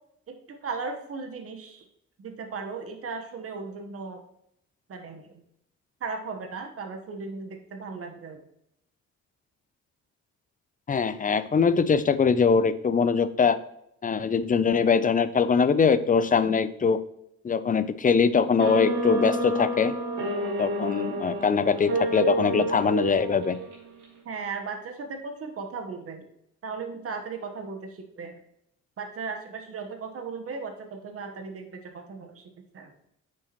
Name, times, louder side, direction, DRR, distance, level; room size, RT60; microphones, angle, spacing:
voice 1, 0.3-1.8 2.2-4.2 4.9-5.3 6.0-8.4 24.2-26.2 26.6-28.3 29.0-32.4 32.7-32.9, right 4 dB, 50° right, 4 dB, 1.2 m, -36 dB
voice 2, 10.9-13.6 14.0-17.0 17.4-19.9 20.6-23.6, left 5 dB, 25° left, 14 dB, 0.5 m, -22 dB
sound 1, 18.6-24.1, right 1 dB, 80° right, 3.1 m, -29 dB
8.4 x 6.3 x 3.0 m, 0.76 s
cardioid pair, 90°, 30 cm